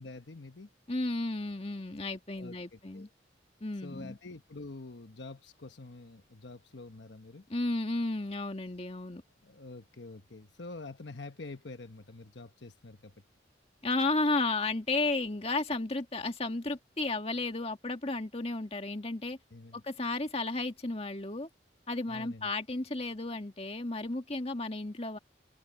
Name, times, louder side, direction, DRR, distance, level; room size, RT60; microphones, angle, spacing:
voice 1, 0.0-0.7 2.4-3.1 3.8-7.5 9.4-13.1 19.5-19.8 22.1-22.5, left 2 dB, 70° left, 1.1 m, -46 dB
voice 2, 0.9-3.1 3.6-4.2 7.5-9.2 13.8-19.4 19.7-21.5 21.9-25.2, left 2 dB, 35° left, 2.0 m, -33 dB
head